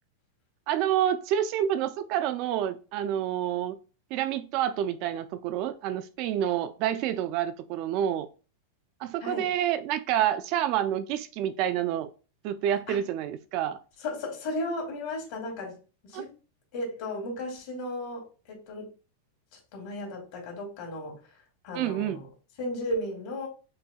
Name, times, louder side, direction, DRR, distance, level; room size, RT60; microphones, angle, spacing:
voice 1, 0.7-3.8 4.1-8.3 9.0-12.1 12.4-13.8 16.1-16.2 21.7-22.2, right 10 dB, 45° right, 0.4 m, -28 dB
voice 2, 9.2-9.5 12.9-13.0 14.0-15.8 16.0-16.3 16.7-18.9 19.5-21.2 21.6-22.3 22.6-23.5, left 1 dB, 60° left, 2.2 m, -35 dB
5.6 x 2.6 x 2.3 m
supercardioid pair, 135°, 0 cm